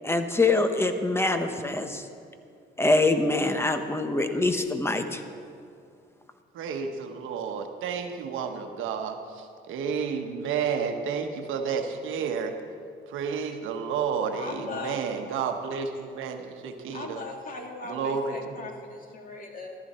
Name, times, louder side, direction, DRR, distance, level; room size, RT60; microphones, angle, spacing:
voice 1, 0.0-2.0 2.8-5.2, left 2 dB, 10° left, 7 dB, 1.1 m, -24 dB
voice 2, 6.5-12.5 13.1-17.2 17.9-18.7, right 6 dB, 85° right, 5 dB, 1.2 m, -31 dB
voice 3, 14.4-15.0 16.9-19.8, left 3 dB, 45° left, 2 dB, 2.2 m, -38 dB
14.0 x 13.0 x 4.3 m, 2.4 s
cardioid pair, 90°, 20 cm